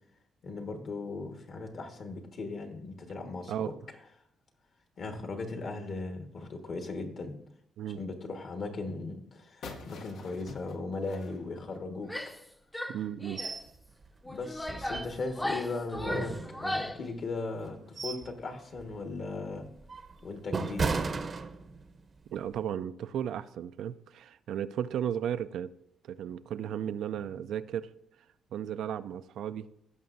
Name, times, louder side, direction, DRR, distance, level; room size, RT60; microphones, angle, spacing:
voice 1, 0.4-3.7 5.0-7.4 7.9-12.1 14.2-19.7 20.2-21.0, left 3 dB, 55° left, 1.5 m, -38 dB
sound 1, 9.6-12.3, left 4 dB, 75° left, 0.9 m, -47 dB
Female speech woman speaking / Yell, 12.0-12.5 12.7-13.6 14.2-17.1, left 1 dB, 10° left, 0.6 m, -37 dB
voice 2, 12.9-13.4 22.3-25.7 26.0-27.9 28.5-29.7, right 9 dB, 75° right, 0.4 m, -35 dB
sound 2, 13.4-13.7 14.0-14.1 14.6-15.4 15.9-17.0 17.5-18.4 18.7-19.0 19.5-22.0 22.4-22.6, right 4 dB, 40° right, 0.7 m, -35 dB
16.5 x 5.8 x 2.6 m
cardioid pair, 90°, 0 cm